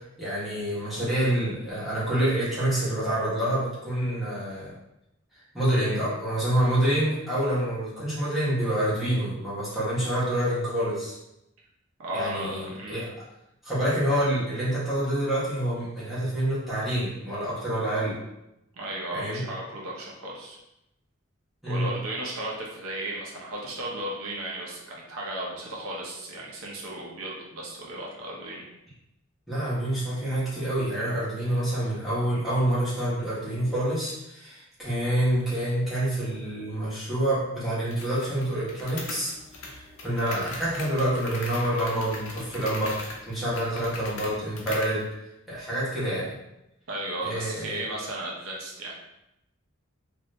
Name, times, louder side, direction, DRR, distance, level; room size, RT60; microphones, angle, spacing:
voice 1, 0.2-4.7 5.5-11.2 12.1-13.1 13.6-18.2 19.1-19.4 21.6-21.9 29.5-39.3 39.6-45.1 45.5-46.3 47.2-47.8, right 1 dB, ahead, -11 dB, 1.2 m, -27 dB
voice 2, 12.0-13.0 18.7-20.6 21.7-28.6 46.9-48.9, right 1 dB, 85° right, -3 dB, 0.8 m, -35 dB
sound 1, 37.9-45.0, left 2 dB, 90° left, 0.7 m, -40 dB
2.9 x 2.6 x 3.2 m, 0.87 s
head